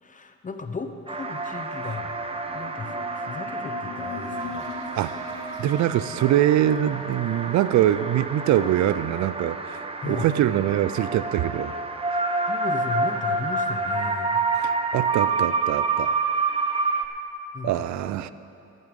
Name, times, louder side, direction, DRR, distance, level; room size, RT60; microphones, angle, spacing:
voice 1, 0.0-2.2 2.5-4.7 10.0-10.3 12.5-14.4 17.5-17.9, left 4 dB, 25° left, 7 dB, 0.9 m, -35 dB
sound 1, 1.1-17.1, right 3 dB, 20° right, 0.8 m, -28 dB
sound 2, 2.0-7.2, left 6 dB, 65° left, 2.9 m, -43 dB
voice 2, 5.6-9.8 10.0-11.8 14.6-16.2 17.6-18.3, right 12 dB, 70° right, 15 dB, 0.5 m, -23 dB
14.0 x 9.5 x 5.2 m, 2.7 s
cardioid pair, 90°, 30 cm